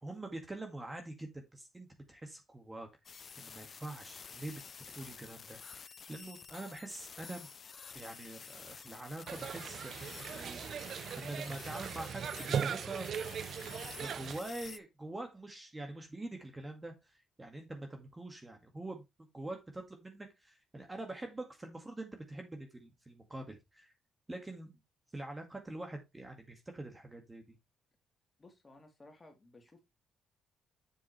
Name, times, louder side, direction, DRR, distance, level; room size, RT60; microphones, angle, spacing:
voice 1, 0.0-4.6 5.0-7.5 7.9-12.3 12.6-13.1 14.0-17.1 17.4-19.0 19.3-23.9 24.3-24.7 25.1-27.4, right 2 dB, 15° right, 1.9 m, -45 dB
sound 1, 3.0-14.8, left 6 dB, 45° left, 0.5 m, -50 dB
sound 2, 9.3-14.4, right 8 dB, 60° right, 0.6 m, -39 dB
voice 2, 28.4-29.8, left 2 dB, 25° left, 3.2 m, -57 dB
7.3 x 7.3 x 3.3 m
cardioid pair, 90°, 0 cm